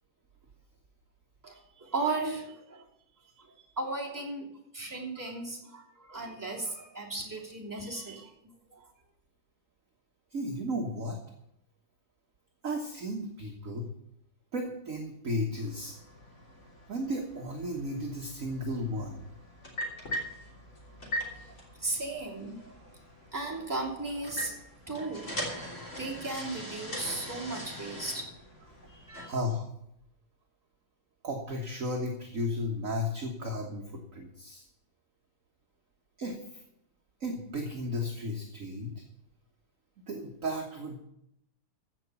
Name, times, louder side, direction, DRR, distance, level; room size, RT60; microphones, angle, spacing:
voice 1, 1.4-2.8 3.4-4.5 4.7-8.3 8.7-8.9 21.4-21.5 21.8-22.7 23.3-24.5 24.9-25.6 26.0-28.2 28.8-29.3, right 3 dB, 10° right, -4 dB, 2.8 m, -36 dB
voice 2, 10.3-11.2 12.6-13.9 14.5-16.0 16.9-19.3 29.2-29.7 31.2-34.6 36.2-36.6 37.2-39.0 40.1-41.0, left 1 dB, 40° right, 1 dB, 1.5 m, -34 dB
sound 1, 15.6-29.2, equal, 35° left, 3.6 m, -41 dB
15.5 x 6.1 x 6.9 m, 0.78 s
omnidirectional pair, 2.4 m